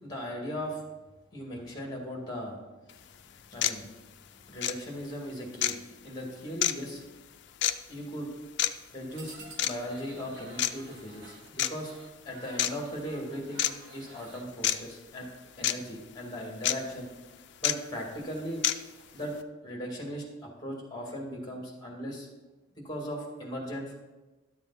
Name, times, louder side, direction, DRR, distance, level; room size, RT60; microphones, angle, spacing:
voice 1, 0.0-0.8 1.3-2.6 3.5-3.8 4.5-5.8 6.0-7.0 7.9-8.3 8.9-9.3 9.6-11.9 12.2-15.3 15.6-17.1 17.6-18.6 19.1-19.3 19.6-22.3 22.8-23.9, equal, 20° left, 0 dB, 2.1 m, -38 dB
sound 1, 2.9-3.0 3.6-3.8 4.6-4.8 5.6-5.8 6.6-6.7 7.6-7.8 8.6-8.7 9.6-9.8 10.6-10.7 11.6-11.7 12.6-12.7 13.6-13.7 14.6-14.8 15.6-15.7 16.6-16.8 17.6-17.7 18.6-18.8, left 11 dB, 60° left, 0.4 m, -26 dB
sound 2, 9.1-14.5 15.3-15.9 16.2-16.4 16.8-16.9 17.3-17.4 17.8-19.4, right 2 dB, 90° right, 1.4 m, -53 dB
11.5 x 7.1 x 4.1 m, 1.2 s
head